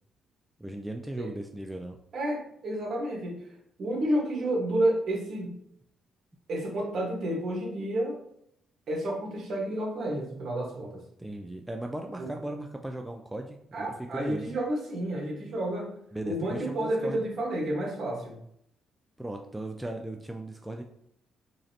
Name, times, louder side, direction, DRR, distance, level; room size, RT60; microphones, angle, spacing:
voice 1, 0.6-2.0 11.2-14.5 16.1-17.2 19.2-20.8, right 1 dB, 10° right, 3 dB, 0.3 m, -37 dB
voice 2, 2.1-3.4 3.8-5.5 6.5-8.1 8.9-10.9 12.2-12.3 13.7-15.9 16.2-18.4, right 1 dB, 55° right, -2 dB, 1.4 m, -30 dB
3.8 x 3.1 x 2.8 m, 0.73 s
cardioid pair, 90°, 0 cm